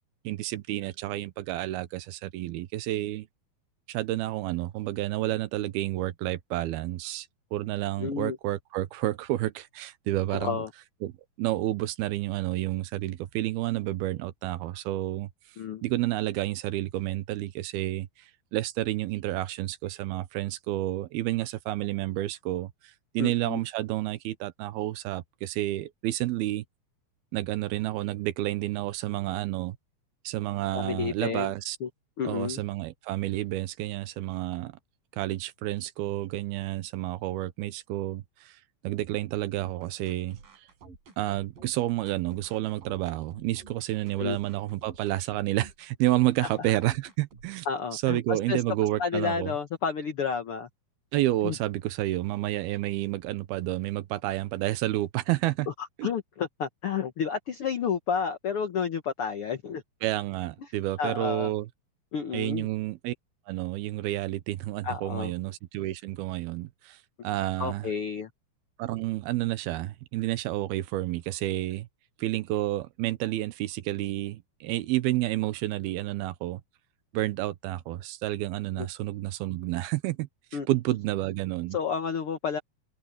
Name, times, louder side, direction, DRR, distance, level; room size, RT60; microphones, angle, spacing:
voice 1, 0.2-3.3 3.9-10.6 11.0-11.1 11.4-15.3 15.8-18.1 18.5-22.7 23.1-26.6 27.3-29.8 30.2-31.8 32.2-34.7 35.2-38.5 38.8-40.4 41.2-47.7 47.9-49.5 51.1-55.7 60.0-61.7 62.3-63.1 63.5-67.0 67.2-67.9 68.8-71.9 72.2-76.6 77.1-80.3 80.7-81.8, right 16 dB, 80° right, 2.8 m, -30 dB
voice 2, 8.0-8.4 10.3-10.7 15.6-15.8 23.2-23.6 30.7-31.5 31.8-31.9 32.2-32.6 44.2-44.4 46.4-46.7 47.6-48.6 49.0-50.7 51.4-51.6 55.8-59.8 60.6-60.7 61.0-61.5 62.1-62.7 64.8-65.3 67.6-68.3 78.8-78.9 80.5-80.7 81.7-82.6, left 6 dB, 80° left, 1.2 m, -31 dB
sound 1, 39.6-47.6, right 4 dB, 65° right, 6.4 m, -51 dB
omnidirectional pair, 4.4 m